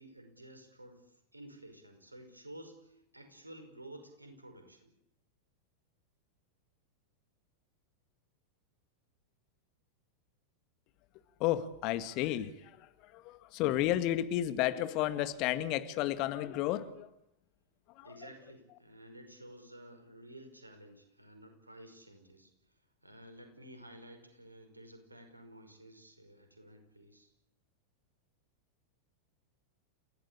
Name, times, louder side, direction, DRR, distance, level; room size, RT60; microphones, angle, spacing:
voice 1, 0.0-4.9 18.0-22.8 23.0-27.3, right 1 dB, 85° right, 5.3 m, -53 dB
voice 2, 11.4-17.1 18.0-18.1, left 13 dB, 40° left, 1.8 m, -32 dB
29.5 x 16.5 x 8.7 m
figure-of-eight pair, 90°, 0 cm